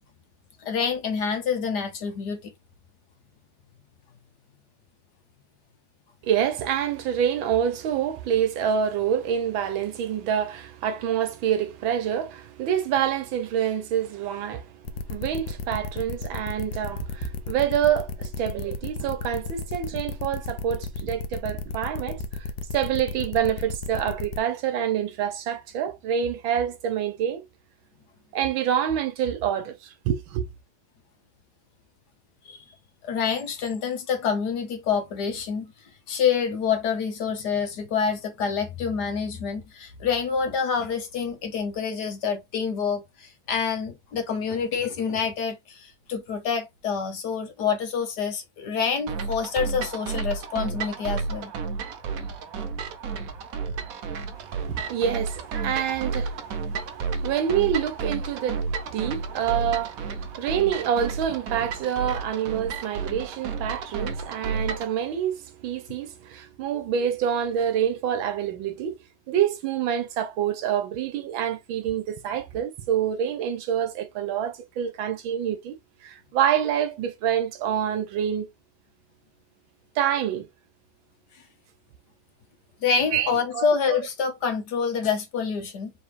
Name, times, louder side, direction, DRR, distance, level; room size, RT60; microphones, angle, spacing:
voice 1, 0.6-2.5 32.4-32.6 33.0-35.7 36.1-51.5 82.8-85.9, left 6 dB, 60° left, 1.5 m, -27 dB
voice 2, 6.2-22.5 22.7-27.5 28.3-30.5 54.4-69.0 69.3-75.8 76.0-78.5 79.9-80.5 83.1-84.0, right 9 dB, 85° right, 1.7 m, -27 dB
sound 1, 14.9-24.4, left 4 dB, 80° left, 1.3 m, -33 dB
sound 2, 49.1-64.9, right 5 dB, 60° right, 1.0 m, -32 dB
3.9 x 3.5 x 3.2 m
omnidirectional pair, 2.1 m